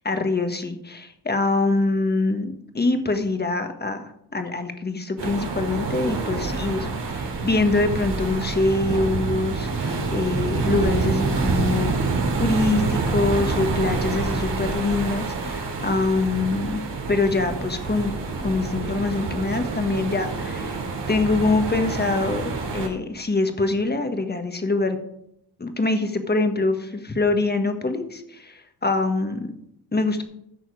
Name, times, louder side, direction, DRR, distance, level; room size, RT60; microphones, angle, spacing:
voice 1, 0.0-11.9 12.3-16.8 17.1-20.8 21.1-25.0 25.6-29.5 29.9-30.2, left 3 dB, 25° left, 6 dB, 1.5 m, -24 dB
sound 1, 5.2-22.9, right 4 dB, 75° right, 2.9 m, -27 dB
14.5 x 6.3 x 4.8 m, 0.75 s
cardioid pair, 100°, 42 cm